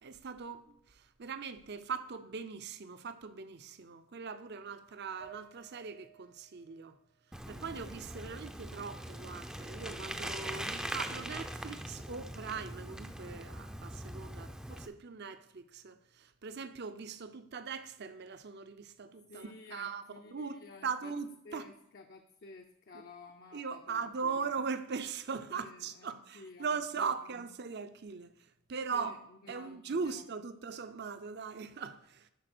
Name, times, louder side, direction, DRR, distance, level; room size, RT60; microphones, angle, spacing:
voice 1, 0.0-7.0 7.5-20.0 20.3-21.6 23.5-28.3 28.7-29.2 29.5-32.3, right 5 dB, 55° right, 0.6 m, -40 dB
sound 1, 5.2-8.6 9.0-10.0, right 10 dB, 75° right, 2.1 m, -60 dB
Bicycle, 7.3-14.9, right 1 dB, 5° right, 0.5 m, -42 dB
voice 2, 19.3-21.1 21.4-24.5 25.5-27.1 28.9-30.2, left 3 dB, 50° left, 0.6 m, -53 dB
11.5 x 4.2 x 6.1 m
head